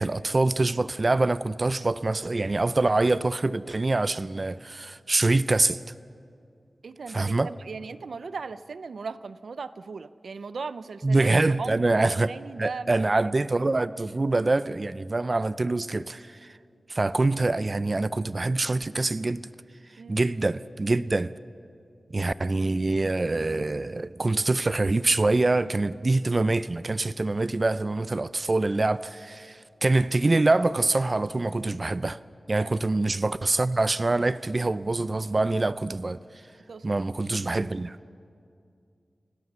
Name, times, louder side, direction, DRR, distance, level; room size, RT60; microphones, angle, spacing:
voice 1, 0.0-5.8 7.1-7.5 11.0-12.3 12.6-16.5 16.9-19.5 20.1-21.3 22.1-32.2 32.5-36.2 36.8-38.0, right 2 dB, 35° right, 0.4 m, -25 dB
voice 2, 6.8-11.3 11.6-13.0 20.0-20.3 32.5-32.7 36.7-36.9, right 4 dB, 85° right, 0.5 m, -37 dB
30.0 x 17.0 x 6.8 m
wide cardioid pair, 95°, 0 cm